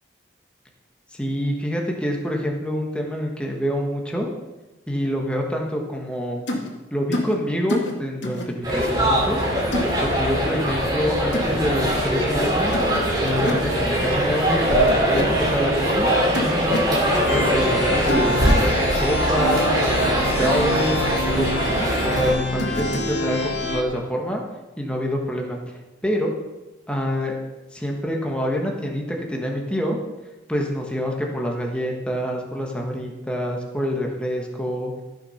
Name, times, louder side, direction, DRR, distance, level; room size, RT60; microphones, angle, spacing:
voice 1, 1.1-4.3 4.9-6.4 6.9-9.4 10.0-12.8 13.2-20.9 21.3-24.4 24.8-25.6 26.0-26.3 26.9-27.3 27.7-30.0 30.5-35.0, equal, 5° left, 0 dB, 1.3 m, -26 dB
sound 1, 6.5-6.7 7.1-7.3 7.7-7.9 8.2-8.5 9.7-9.9 11.3-11.5 12.7-13.0 13.3-13.6 14.9-15.2 16.3-16.9 18.1-18.6 20.2-20.5 22.6-23.1, left 1 dB, 80° left, 2.1 m, -27 dB
sound 2, 8.6-22.3, equal, 20° right, 2.8 m, -22 dB
sound 3, 17.3-23.8, left 1 dB, 65° left, 1.8 m, -27 dB
14.5 x 6.6 x 5.7 m, 1.1 s
head